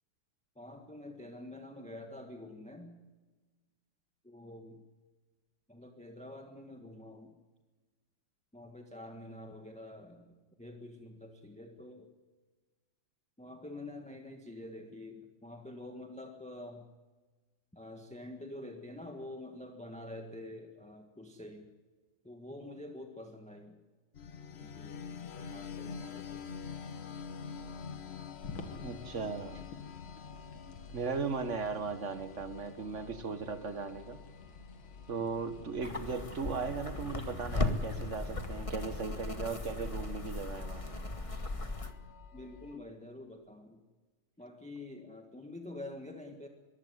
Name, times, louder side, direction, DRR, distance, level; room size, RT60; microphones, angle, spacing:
voice 1, 0.5-3.0 4.2-4.8 5.7-7.4 8.5-12.1 13.4-16.9 17.7-21.7 22.2-23.8 24.5-26.6 42.3-43.8 44.4-46.5, left 1 dB, 5° left, 4 dB, 1.3 m, -47 dB
sound 1, 24.1-42.8, left 6 dB, 45° left, 0.9 m, -48 dB
sound 2, 28.4-38.5, left 3 dB, 80° left, 2.9 m, -52 dB
voice 2, 28.8-29.6 30.9-34.2 35.1-40.8, right 5 dB, 40° right, 11 dB, 1.6 m, -37 dB
sound 3, 35.8-41.9, left 2 dB, 20° left, 1.1 m, -37 dB
23.0 x 15.5 x 9.7 m, 1.3 s
omnidirectional pair, 2.3 m